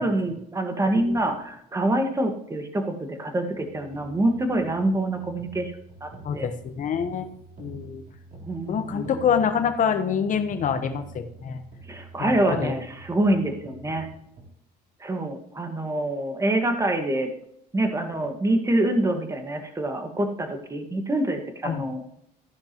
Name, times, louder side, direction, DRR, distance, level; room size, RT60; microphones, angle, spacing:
voice 1, 0.0-5.7 6.0-6.5 8.4-9.2 11.9-14.1 15.0-17.3 17.7-22.0, right 1 dB, 20° right, 4 dB, 1.7 m, -26 dB
sound 1, 3.5-14.5, right 2 dB, 50° right, 3.9 m, -46 dB
voice 2, 6.2-7.3 7.6-8.0 8.7-11.6 12.2-12.8 21.6-21.9, left 7 dB, 50° left, 8 dB, 1.2 m, -26 dB
14.5 x 10.5 x 3.1 m, 0.76 s
cardioid pair, 110°, 17 cm